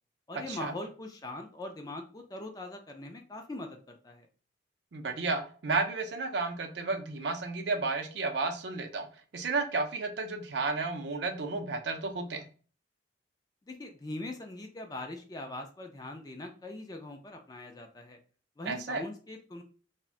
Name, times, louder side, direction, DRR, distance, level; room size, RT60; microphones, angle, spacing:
voice 1, 0.3-4.3 13.6-18.2 18.6-19.6, left 2 dB, 20° left, 4 dB, 0.3 m, -41 dB
voice 2, 4.9-9.1 9.3-12.5 18.6-19.0, right 3 dB, 60° right, 5 dB, 0.5 m, -32 dB
2.5 x 2.1 x 3.6 m, 0.39 s
head